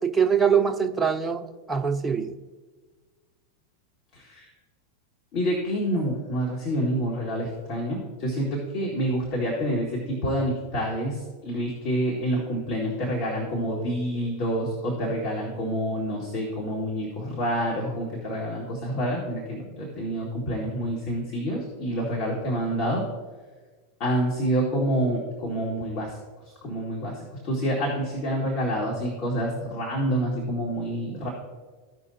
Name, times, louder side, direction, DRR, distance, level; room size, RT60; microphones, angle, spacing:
voice 1, 0.0-2.3, right 7 dB, 10° right, 4 dB, 0.8 m, -23 dB
voice 2, 4.1-4.5 5.3-23.0 24.0-26.1 26.6-31.3, equal, 50° left, -2 dB, 2.0 m, -28 dB
15.0 x 5.5 x 2.7 m, 1.4 s
hypercardioid pair, 95°, 0 cm